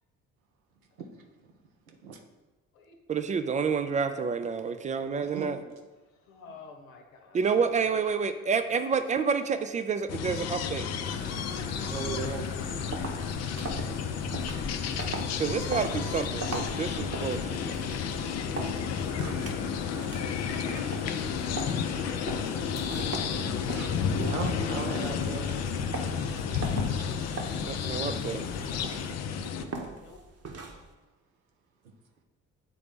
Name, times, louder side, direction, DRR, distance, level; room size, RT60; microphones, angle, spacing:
voice 1, 3.1-5.6 7.3-10.9 15.4-17.8 27.6-28.4, right 5 dB, 20° right, 10 dB, 0.3 m, -29 dB
voice 2, 5.3-5.6 11.9-12.5 23.7-23.9 24.1-25.5, right 5 dB, 85° right, 3 dB, 0.7 m, -36 dB
voice 3, 6.0-8.1 8.4-8.7 12.1-12.5 30.0-30.2, left 4 dB, 80° left, 3 dB, 0.9 m, -51 dB
sound 1, 10.1-29.6, left 7 dB, 40° left, 0.5 m, -32 dB
sound 2, 11.0-29.1, left 1 dB, 20° left, 1.0 m, -42 dB
sound 3, 12.4-30.9, right 3 dB, 35° right, 1.0 m, -41 dB
8.1 x 3.8 x 3.6 m, 1.2 s
figure-of-eight pair, 50°, 41 cm